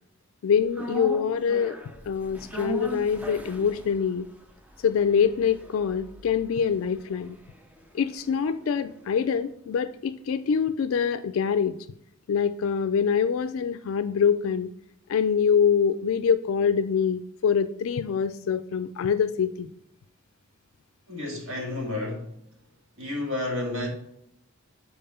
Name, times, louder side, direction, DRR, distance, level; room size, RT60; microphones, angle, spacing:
voice 1, 0.4-1.8 2.1-4.3 4.8-7.4 7.9-11.8 12.3-14.7 15.1-19.7, left 7 dB, 70° left, 0.3 m, -25 dB
sound 1, 0.7-9.0 9.3-9.4, right 2 dB, 5° right, 0.5 m, -40 dB
voice 2, 21.1-22.3 23.0-23.9, left 2 dB, 65° right, 2.0 m, -31 dB
5.5 x 4.2 x 5.5 m
head